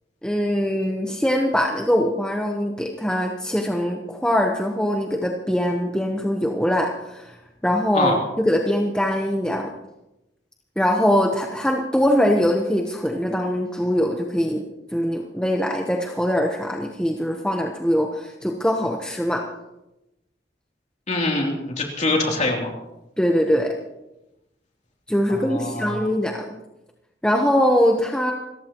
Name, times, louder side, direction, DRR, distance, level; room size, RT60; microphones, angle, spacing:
voice 1, 0.2-7.3 7.6-9.7 10.8-14.6 14.9-19.4 23.2-23.7 25.1-26.4 27.2-28.3, equal, 5° left, 1 dB, 1.0 m, -22 dB
voice 2, 21.1-22.7 25.3-26.1, left 2 dB, 40° left, 0 dB, 3.2 m, -24 dB
27.5 x 14.5 x 3.0 m, 0.94 s
head